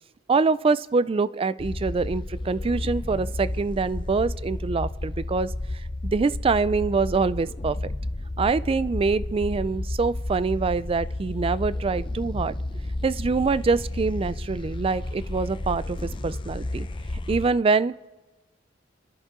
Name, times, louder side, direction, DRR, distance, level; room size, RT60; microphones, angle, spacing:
voice 1, 0.3-5.5 6.0-7.9 8.4-12.5 13.0-16.9 17.3-17.9, right 4 dB, 30° right, 17 dB, 0.3 m, -25 dB
sound 1, 1.6-17.5, left 1 dB, 25° left, 0.5 m, -32 dB
26.5 x 11.0 x 3.7 m, 1.2 s
head